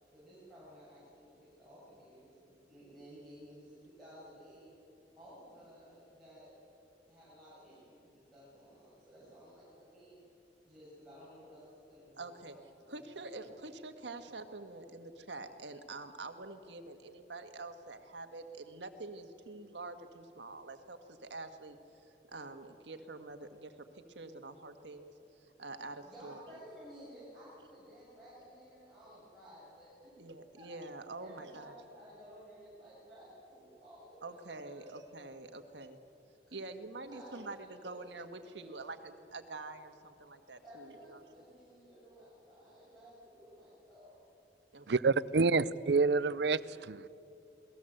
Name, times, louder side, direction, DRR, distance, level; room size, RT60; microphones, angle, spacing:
voice 1, 0.0-4.7 5.2-6.5 6.8-10.2 10.6-12.7 13.0-13.5 26.0-30.1 30.6-30.7 31.2-35.0 35.5-35.8 36.5-36.6 37.1-38.8 40.5-44.2, equal, ahead, -11 dB, 7.5 m, -55 dB
voice 2, 12.2-21.8 22.3-25.1 25.4-26.6 30.2-31.7 34.2-36.0 36.5-41.2 44.7-44.9, right 3 dB, 85° right, 7 dB, 1.6 m, -46 dB
voice 3, 44.9-47.1, right 4 dB, 65° right, 18 dB, 0.5 m, -28 dB
28.0 x 19.0 x 7.9 m, 2.8 s
head